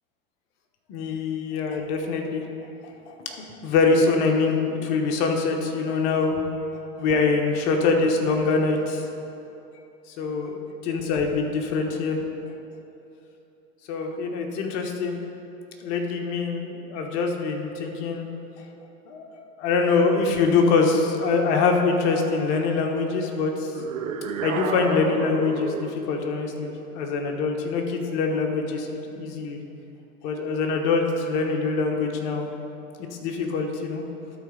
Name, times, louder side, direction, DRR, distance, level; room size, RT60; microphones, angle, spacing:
voice 1, 0.9-2.4 2.8-6.4 7.0-9.1 10.2-10.6 10.8-12.2 13.9-15.2 15.8-18.2 19.1-23.7 24.4-29.6 30.2-32.5 33.2-34.0, left 4 dB, 50° left, 2 dB, 1.3 m, -24 dB
sound 1, 23.7-26.0, right 6 dB, 60° right, 0.8 m, -31 dB
12.5 x 4.3 x 4.9 m, 2.8 s
figure-of-eight pair, 95°, 45 cm